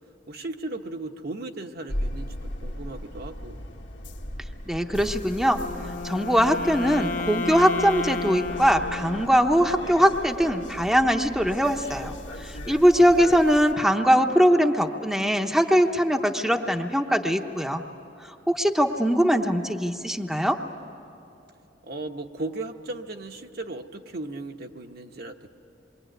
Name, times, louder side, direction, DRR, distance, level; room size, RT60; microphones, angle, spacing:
voice 1, 0.3-3.6 13.0-13.1 21.8-25.5, right 2 dB, 60° right, 4 dB, 1.1 m, -36 dB
sound 1, 1.9-13.7, left 1 dB, 90° left, 1.9 m, -37 dB
voice 2, 4.7-5.6 6.0-12.1 12.4-17.8 18.2-20.6, equal, ahead, 3 dB, 0.8 m, -21 dB
Wind instrument woodwind instrument, 5.5-9.8, left 4 dB, 45° left, 0.8 m, -32 dB
27.0 x 23.0 x 9.1 m, 2.7 s
head